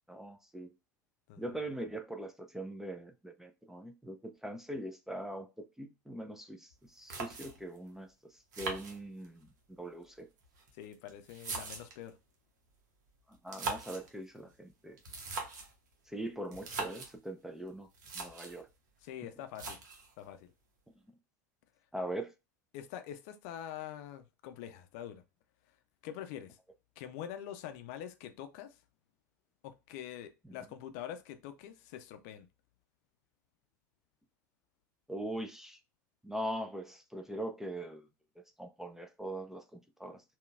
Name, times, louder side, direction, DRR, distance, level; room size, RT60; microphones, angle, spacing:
voice 1, 0.1-0.7 1.4-8.1 8.6-10.3 13.3-15.0 16.1-17.9 18.1-18.7 21.9-22.3 30.4-30.5 35.1-35.8 36.2-38.1 38.6-40.2, right 1 dB, 5° right, 0.4 m, -41 dB
sound 1, 6.7-6.8 7.1-7.8 8.5-9.5 10.4-12.1 13.3-14.1 15.0-15.8 16.5-17.1 17.7-17.8 17.9-18.6 19.5-20.1, right 4 dB, 65° right, 0.8 m, -41 dB
voice 2, 10.7-12.2 19.0-19.8 20.2-20.5 22.7-25.2 26.0-26.6 27.0-28.7 29.6-32.5, left 10 dB, 55° left, 0.5 m, -45 dB
3.7 x 2.2 x 2.3 m
figure-of-eight pair, 75°, 10 cm